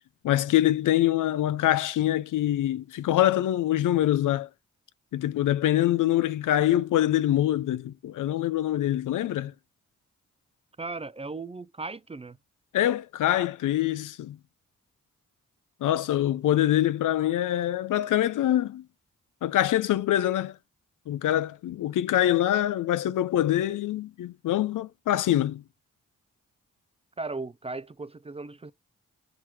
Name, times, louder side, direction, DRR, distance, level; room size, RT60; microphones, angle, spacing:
voice 1, 0.2-4.5 5.1-9.5 12.7-14.4 15.8-18.8 19.4-20.6 21.1-25.6, left 13 dB, 80° left, 0.5 m, -24 dB
voice 2, 10.8-12.4 27.2-28.7, right 3 dB, 20° right, 0.4 m, -36 dB
5.8 x 4.6 x 4.7 m
supercardioid pair, 40°, 31 cm